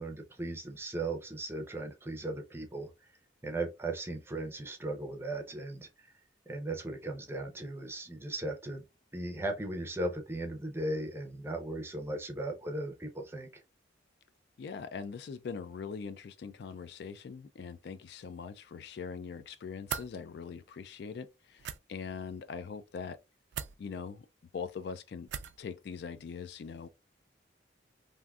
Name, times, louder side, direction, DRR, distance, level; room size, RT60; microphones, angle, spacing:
voice 1, 0.0-2.9 3.4-6.1 6.5-8.8 9.1-13.5, right 2 dB, 15° right, 0.5 m, -37 dB
voice 2, 14.6-23.2 23.8-24.3 24.5-25.3 25.6-26.9, left 6 dB, 60° left, 0.3 m, -42 dB
sound 1, 19.9-20.1 21.6-21.8 23.5-23.8 25.3-25.6, right 9 dB, 65° right, 0.3 m, -37 dB
3.5 x 2.6 x 2.3 m
head